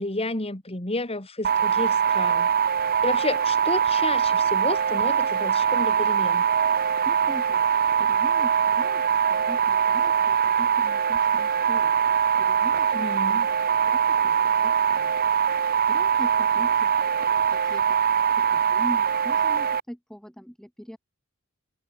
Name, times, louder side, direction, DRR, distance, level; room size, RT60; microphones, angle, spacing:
voice 1, 0.0-2.5 3.0-6.4 12.9-13.5, left 2 dB, 25° left, 2.6 m, -31 dB
sound 1, 1.4-19.8, right 7 dB, 40° right, 0.6 m, -22 dB
voice 2, 7.0-7.6 8.0-11.9 12.4-13.4 13.7-15.1 15.9-17.0 17.5-18.0 18.4-21.0, equal, ahead, 1.3 m, -41 dB
head